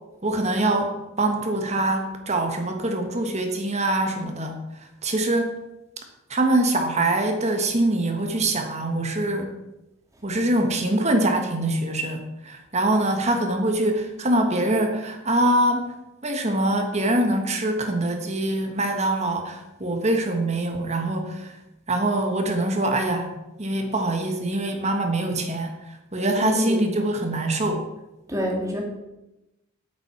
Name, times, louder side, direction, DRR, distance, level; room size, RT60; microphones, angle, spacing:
voice 1, 0.2-4.6 5.0-5.5 6.3-9.5 10.2-16.0 16.2-21.5 21.9-23.3 23.6-25.7 26.1-27.8, right 1 dB, 30° right, 5 dB, 1.3 m, -24 dB
voice 2, 26.4-26.8 28.3-28.8, left 1 dB, 15° right, 0 dB, 2.3 m, -26 dB
8.8 x 7.8 x 6.1 m, 0.95 s
head